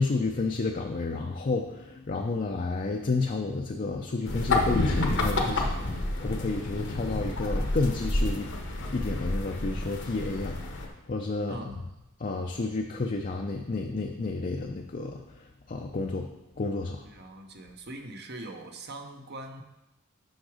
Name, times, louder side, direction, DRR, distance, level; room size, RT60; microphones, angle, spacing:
voice 1, 0.0-5.6 6.2-8.5 8.9-11.7 12.2-15.2 15.7-16.3 16.6-17.1, left 3 dB, 40° left, 2 dB, 0.5 m, -30 dB
sound 1, 4.2-10.9, left 2 dB, 60° left, 0.9 m, -29 dB
voice 2, 5.4-5.8 11.5-11.8 17.0-19.6, right 2 dB, 50° right, 4 dB, 0.8 m, -42 dB
6.4 x 5.8 x 4.9 m, 0.95 s
head